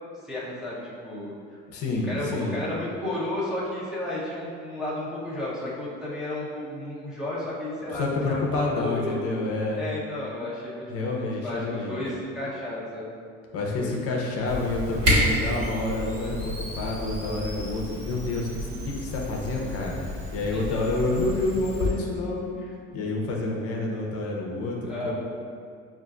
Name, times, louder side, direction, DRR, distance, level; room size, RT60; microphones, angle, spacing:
voice 1, 0.2-1.6 2.0-9.1 9.8-13.1 13.8-13.9 20.5-20.6 22.6-22.7 24.9-25.1, left 1 dB, ahead, -9 dB, 0.6 m, -33 dB
voice 2, 1.7-2.6 7.9-9.8 10.9-12.0 13.5-22.6 22.9-25.1, left 2 dB, 55° left, -1 dB, 0.6 m, -28 dB
Camera, 14.5-21.9, left 1 dB, 55° right, 1.4 m, -30 dB
6.4 x 2.4 x 2.4 m, 2.3 s
cardioid pair, 160°, 29 cm